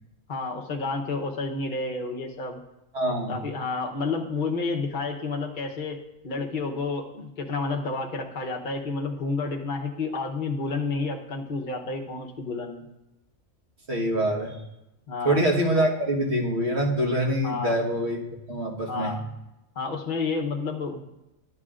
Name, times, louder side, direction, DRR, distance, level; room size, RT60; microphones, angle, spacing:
voice 1, 0.3-2.6 3.3-6.0 6.2-12.8 15.1-15.4 17.4-17.7 18.9-19.2 19.7-21.0, left 3 dB, 40° left, 1 dB, 1.0 m, -30 dB
voice 2, 2.9-3.4 13.9-14.5 15.2-18.2 18.5-19.1, right 1 dB, 50° right, -2 dB, 1.6 m, -25 dB
12.5 x 8.2 x 2.5 m, 0.93 s
omnidirectional pair, 1.5 m